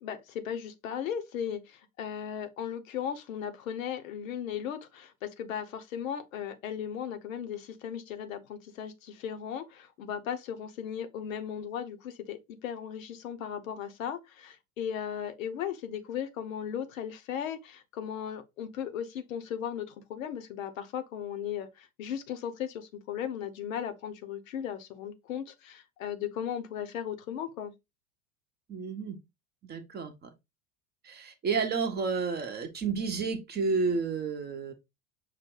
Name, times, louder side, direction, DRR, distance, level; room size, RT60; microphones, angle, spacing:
voice 1, 0.0-27.7, left 9 dB, 65° left, 0.8 m, -37 dB
voice 2, 28.7-29.2 29.7-30.3 31.0-34.7, right 4 dB, 20° right, 0.8 m, -31 dB
5.7 x 2.2 x 3.7 m
figure-of-eight pair, 80°, 44 cm